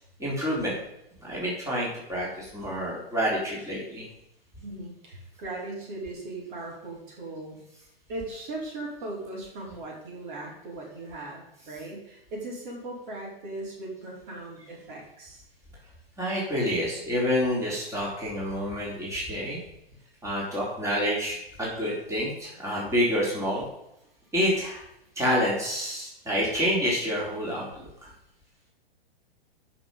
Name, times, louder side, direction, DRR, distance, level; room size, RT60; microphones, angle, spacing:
voice 1, 0.2-0.8 1.2-4.1 16.2-19.6 20.2-23.7 24.3-24.8 25.2-28.1, equal, 10° right, -5 dB, 3.9 m, -28 dB
voice 2, 4.6-7.6 8.1-15.4, right 2 dB, 55° right, -2 dB, 4.8 m, -38 dB
13.0 x 6.1 x 5.4 m, 0.81 s
hypercardioid pair, 120°, 30 cm